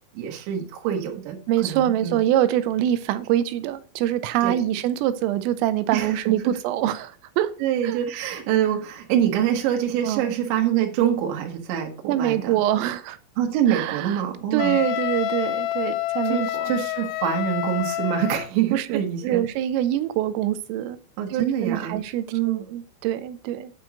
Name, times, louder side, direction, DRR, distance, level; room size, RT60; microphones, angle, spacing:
voice 1, 0.2-2.2 4.4-4.6 5.9-6.6 7.6-12.6 13.4-14.8 16.3-19.5 21.2-22.0 22.3-22.7, right 10 dB, 70° right, 3.2 m, -25 dB
voice 2, 1.5-7.5 7.8-8.0 10.0-10.3 12.1-13.2 13.7-14.2 14.5-16.7 18.7-18.9 19.2-21.0 21.3-23.7, right 12 dB, 85° right, 3.3 m, -24 dB
Wind instrument woodwind instrument, 14.6-18.5, left 14 dB, 85° left, 3.1 m, -28 dB
9.2 x 4.5 x 6.2 m
omnidirectional pair, 5.8 m